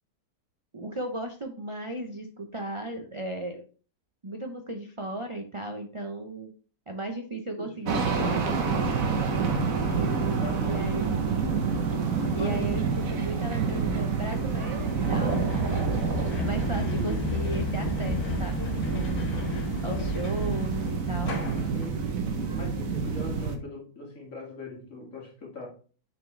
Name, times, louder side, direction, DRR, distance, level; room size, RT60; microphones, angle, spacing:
voice 1, 0.7-3.6 4.2-6.5 6.9-8.5 10.6-11.2 12.3-16.0 16.4-19.2 19.8-21.4, right 1 dB, 45° right, 3 dB, 0.4 m, -36 dB
voice 2, 7.6-9.5 10.4-10.8 12.3-12.6 16.7-17.2 19.8-20.2 21.7-22.3 22.5-25.7, left 3 dB, 55° left, -1 dB, 2.3 m, -41 dB
sound 1, 7.9-23.6, right 5 dB, 65° right, 1.3 m, -28 dB
sound 2, 11.6-21.9, left 1 dB, 75° left, 1.7 m, -34 dB
6.7 x 4.5 x 3.2 m, 0.39 s
omnidirectional pair, 1.6 m